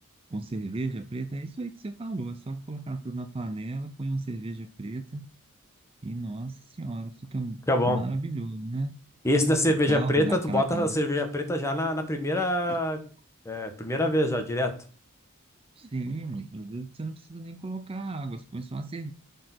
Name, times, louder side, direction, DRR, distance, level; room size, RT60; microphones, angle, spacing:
voice 1, 0.3-5.3 6.0-8.9 9.6-10.9 12.7-12.8 15.8-19.1, right 2 dB, 25° right, 9 dB, 0.5 m, -34 dB
voice 2, 7.7-8.0 9.2-13.0 13.4-14.7, left 1 dB, 15° left, 5 dB, 1.3 m, -25 dB
7.4 x 4.5 x 6.0 m, 0.40 s
head